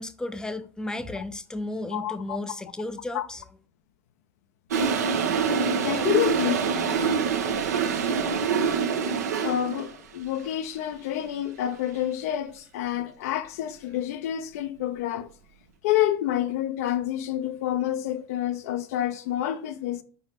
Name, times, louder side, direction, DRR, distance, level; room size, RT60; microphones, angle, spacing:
voice 1, 0.0-3.4, left 2 dB, 10° left, 0.6 m, -34 dB
voice 2, 1.9-2.4 3.1-3.3 5.8-6.7 9.4-15.3 15.8-20.0, left 12 dB, 60° left, 0.5 m, -28 dB
Toilet flush, 4.7-9.9, right 6 dB, 70° right, 0.8 m, -25 dB
5.1 x 4.6 x 4.4 m
figure-of-eight pair, 75°, 9 cm